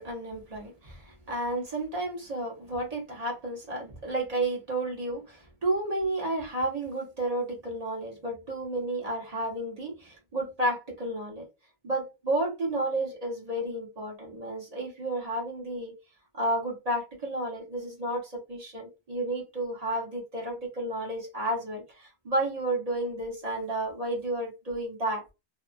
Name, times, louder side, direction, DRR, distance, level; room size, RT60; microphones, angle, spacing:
voice 1, 0.0-11.4 11.8-15.9 16.3-25.2, right 1 dB, 35° right, 1.0 m, -32 dB
2.7 x 2.3 x 2.4 m
omnidirectional pair, 1.2 m